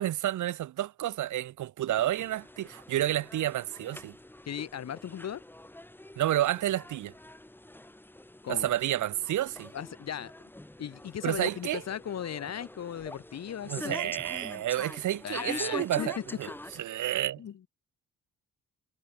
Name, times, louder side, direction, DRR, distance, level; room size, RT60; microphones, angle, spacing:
voice 1, 0.0-4.1 6.2-7.1 8.5-9.7 11.2-11.8 13.7-16.5 16.8-17.4, right 13 dB, 80° right, 3.4 m, -30 dB
sound 1, 2.0-16.8, left 1 dB, 5° left, 2.0 m, -44 dB
voice 2, 4.5-5.4 8.4-8.7 9.7-10.3 10.8-14.1 15.2-16.1 17.4-17.5, left 9 dB, 60° left, 4.4 m, -37 dB
cardioid pair, 90°, 30 cm